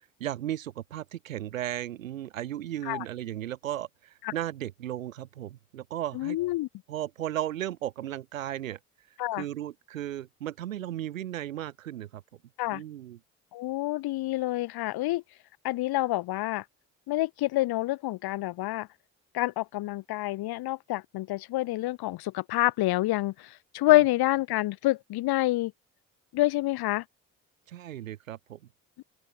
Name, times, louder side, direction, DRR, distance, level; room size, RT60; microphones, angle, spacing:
voice 1, 0.2-6.4 6.9-8.8 9.3-12.2 12.7-13.2 23.9-24.0 27.7-28.6, right 12 dB, 90° right, 5.6 m, -35 dB
voice 2, 6.1-6.7 9.2-9.4 12.6-12.8 13.5-15.2 15.6-16.6 17.1-18.9 19.3-25.7 26.3-27.0, left 17 dB, 70° left, 4.5 m, -27 dB
open air
hypercardioid pair, 45°, 39 cm